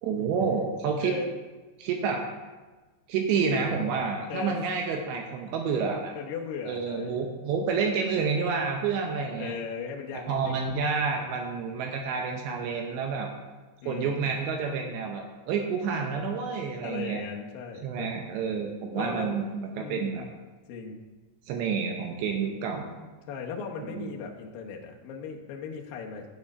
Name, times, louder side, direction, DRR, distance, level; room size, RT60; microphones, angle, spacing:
voice 1, 0.0-1.2 1.8-2.2 3.1-6.1 6.7-9.6 10.3-13.3 13.9-17.2 17.8-20.3 21.5-22.9 24.0-24.1, right 5 dB, 75° right, 3 dB, 2.7 m, -29 dB
voice 2, 1.0-1.3 4.3-4.6 6.2-7.3 9.4-10.6 13.8-14.4 16.8-18.1 18.9-20.3 20.7-21.1 23.3-26.3, left 5 dB, 85° left, 0 dB, 2.0 m, -38 dB
9.0 x 7.6 x 5.4 m, 1.3 s
omnidirectional pair, 5.8 m